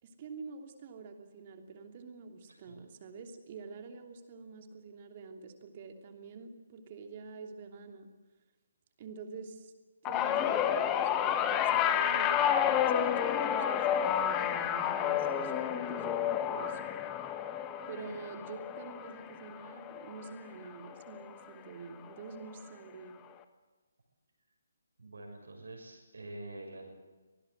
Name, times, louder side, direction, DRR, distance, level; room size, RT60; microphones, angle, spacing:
voice 1, 0.0-8.1 9.0-9.7 10.0-16.9 17.9-23.2, right 4 dB, 35° right, 5 dB, 3.0 m, -47 dB
sound 1, 10.1-20.5 20.8-21.2 22.4-22.5, left 9 dB, 15° left, 1.4 m, -30 dB
voice 2, 25.0-26.9, right 2 dB, 65° right, 2 dB, 6.5 m, -46 dB
25.5 x 19.0 x 8.1 m, 1.3 s
figure-of-eight pair, 140°, 0 cm